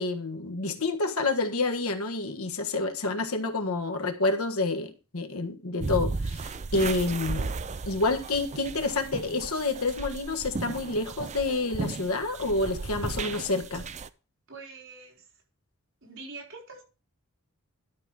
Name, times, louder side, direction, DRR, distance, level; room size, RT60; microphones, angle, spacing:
voice 1, 0.0-6.4 6.7-7.5 7.9-13.8, left 3 dB, 80° left, 1.5 m, -28 dB
sound 1, 5.8-14.1, right 3 dB, 30° right, 0.5 m, -35 dB
voice 2, 14.5-15.3 16.0-16.8, right 3 dB, 60° right, 4.5 m, -44 dB
12.0 x 5.9 x 4.9 m
head